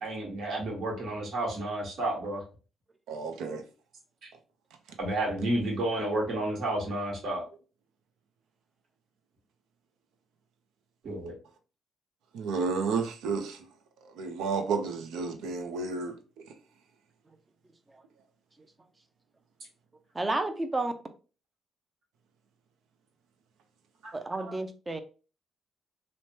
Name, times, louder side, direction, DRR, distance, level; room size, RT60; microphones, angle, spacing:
voice 1, 0.0-2.4 5.0-7.5 11.0-11.3 24.0-24.1 24.4-24.5, right 1 dB, 60° right, 1.3 m, -31 dB
voice 2, 3.1-3.6 12.3-13.6 14.2-16.1, right 4 dB, 85° right, 0.5 m, -31 dB
voice 3, 20.1-20.9 24.1-25.0, right 2 dB, 20° right, 0.5 m, -31 dB
3.1 x 2.1 x 2.7 m
cardioid pair, 90°, 0 cm